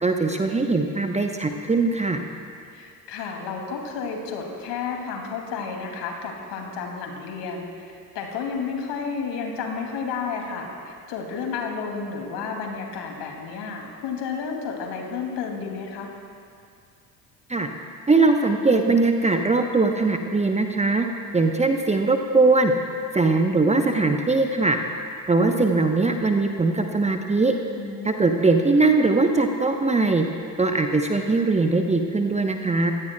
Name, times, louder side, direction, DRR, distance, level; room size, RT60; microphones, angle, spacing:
voice 1, 0.0-2.2 17.5-17.7 18.1-21.1 21.3-22.7 23.1-24.8 25.3-27.5 28.0-30.2 30.6-32.9, right 3 dB, 15° right, 4 dB, 0.9 m, -21 dB
voice 2, 2.7-16.1 27.8-28.3, left 5 dB, 55° left, 1 dB, 2.7 m, -32 dB
25.0 x 16.5 x 2.3 m, 2.4 s
figure-of-eight pair, 60°, 50 cm